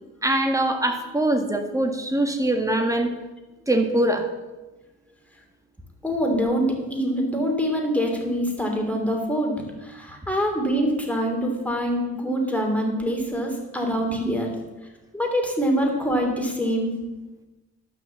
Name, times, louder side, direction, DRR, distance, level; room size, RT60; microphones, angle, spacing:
voice 1, 0.2-3.1 3.7-4.3, right 1 dB, 10° right, 5 dB, 1.7 m, -22 dB
voice 2, 6.0-9.5 9.8-14.5 15.1-16.9, equal, 5° left, 1 dB, 3.0 m, -24 dB
11.5 x 6.3 x 7.3 m, 1.1 s
cardioid pair, 90°, 30 cm